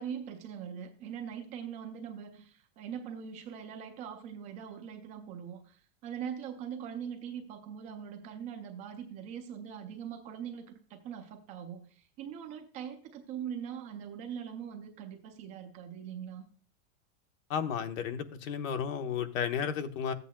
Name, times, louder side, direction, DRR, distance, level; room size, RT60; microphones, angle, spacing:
voice 1, 0.0-16.5, right 8 dB, 20° right, 0.4 m, -42 dB
voice 2, 17.5-20.1, left 7 dB, 80° left, 1.2 m, -33 dB
14.0 x 8.2 x 2.2 m
supercardioid pair, 180°, 39 cm